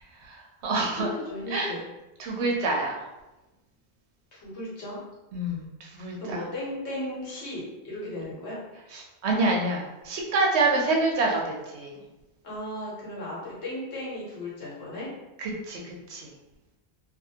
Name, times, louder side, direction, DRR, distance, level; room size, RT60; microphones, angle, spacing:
voice 1, 0.2-1.1 1.5-1.7 2.2-3.0 5.3-6.4 8.9-11.9 15.4-16.3, right 2 dB, 85° right, 0 dB, 0.9 m, -27 dB
voice 2, 1.0-1.8 4.3-5.0 6.2-8.6 12.4-15.1, left 1 dB, 85° left, -6 dB, 1.3 m, -35 dB
2.5 x 2.5 x 2.7 m, 1.0 s
omnidirectional pair, 1.1 m